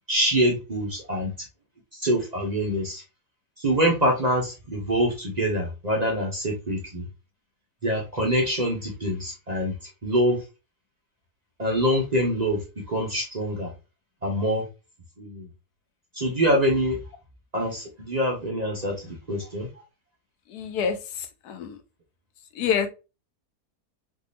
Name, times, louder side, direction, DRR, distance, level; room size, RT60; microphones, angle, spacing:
voice 1, 0.1-1.3 1.9-3.0 3.6-7.1 7.8-9.7 10.0-10.4 11.6-13.7 14.2-14.6 15.2-15.5 16.1-17.0 17.5-19.7, equal, 35° right, 0.7 m, -25 dB
voice 2, 20.5-21.8 22.5-22.9, left 7 dB, 85° left, 1.2 m, -27 dB
3.6 x 2.7 x 2.5 m
omnidirectional pair, 1.6 m